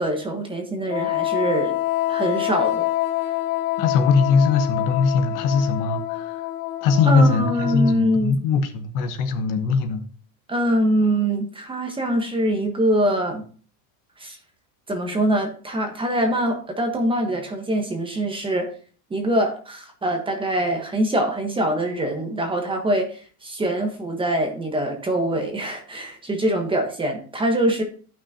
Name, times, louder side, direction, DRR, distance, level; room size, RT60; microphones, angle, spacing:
voice 1, 0.0-1.8 2.1-2.9 7.0-8.4 10.5-13.4 14.2-14.4 14.9-18.7 19.1-27.8, right 1 dB, 10° right, 3 dB, 1.2 m, -23 dB
Wind instrument woodwind instrument, 0.9-8.2, left 15 dB, 70° left, 0.9 m, -26 dB
voice 2, 3.8-6.4 6.8-10.0, left 4 dB, 45° left, 7 dB, 1.2 m, -20 dB
13.5 x 6.1 x 2.8 m, 0.42 s
supercardioid pair, 150°, 45 cm